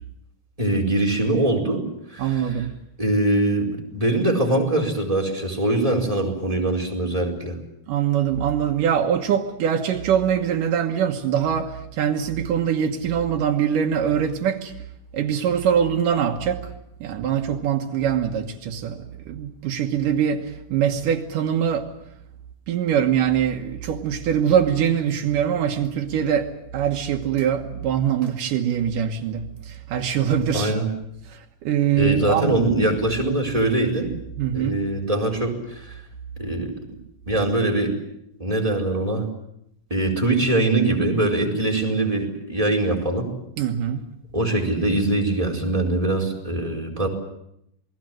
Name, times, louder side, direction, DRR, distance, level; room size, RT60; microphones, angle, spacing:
voice 1, 0.6-2.7 3.0-7.6 30.5-30.9 31.9-34.1 34.5-36.0 36.4-36.7 37.3-37.9 38.4-39.3 39.9-43.3 44.3-47.1, right 2 dB, 10° right, 4.4 m, -22 dB
voice 2, 2.2-2.7 7.9-14.7 15.1-16.7 17.0-21.9 22.7-30.7 31.3-32.6 34.4-34.7 43.6-44.0, right 8 dB, 80° right, 3.0 m, -23 dB
28.0 x 20.5 x 7.8 m
omnidirectional pair, 3.7 m